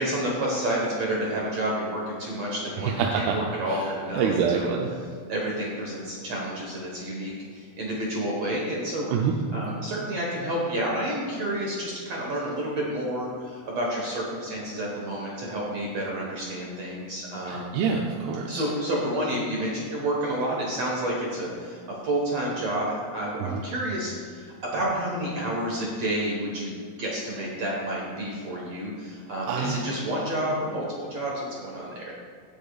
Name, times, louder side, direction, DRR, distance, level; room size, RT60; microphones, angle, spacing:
voice 1, 0.0-4.7 5.3-9.1 9.5-17.8 18.5-32.1, right 1 dB, 55° right, -3 dB, 1.9 m, -30 dB
voice 2, 2.8-3.4 3.7-4.9 9.1-9.3 17.5-18.6 23.4-23.6 29.5-29.8, right 6 dB, 80° right, 0 dB, 2.7 m, -26 dB
18.0 x 8.3 x 2.4 m, 2.2 s
omnidirectional pair, 4.7 m